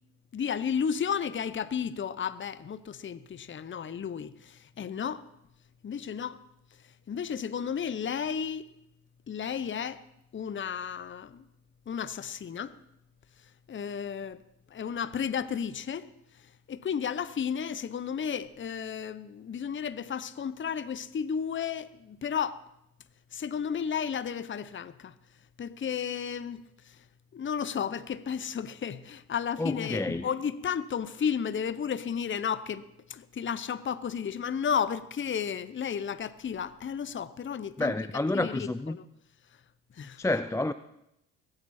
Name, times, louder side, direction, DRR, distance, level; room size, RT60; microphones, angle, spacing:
voice 1, 0.3-5.3 5.8-6.4 7.1-8.6 9.3-10.0 10.3-11.4 11.9-12.8 13.7-14.4 14.7-16.1 16.7-22.6 23.3-25.1 25.6-27.0 27.3-38.0 38.3-39.0 40.0-40.2, left 7 dB, 30° left, 0.8 m, -33 dB
voice 2, 29.6-30.3 37.8-39.0 40.2-40.7, left 2 dB, 10° left, 0.4 m, -29 dB
22.0 x 8.9 x 4.3 m
supercardioid pair, 60°, 37 cm